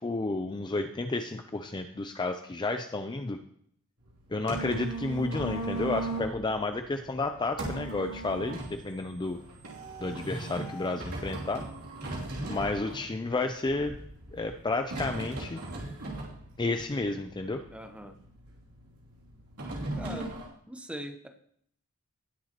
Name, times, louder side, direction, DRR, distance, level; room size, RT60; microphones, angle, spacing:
voice 1, 0.0-3.4 4.3-9.4 10.0-11.6 12.5-14.0 14.3-15.6 16.6-17.6, left 2 dB, 20° left, 7 dB, 0.4 m, -31 dB
sound 1, 4.0-20.4, right 2 dB, 90° right, 2.9 m, -39 dB
voice 2, 17.7-18.2 19.9-20.3 20.7-21.3, equal, 5° right, 5 dB, 0.9 m, -41 dB
18.5 x 6.8 x 3.0 m, 0.66 s
head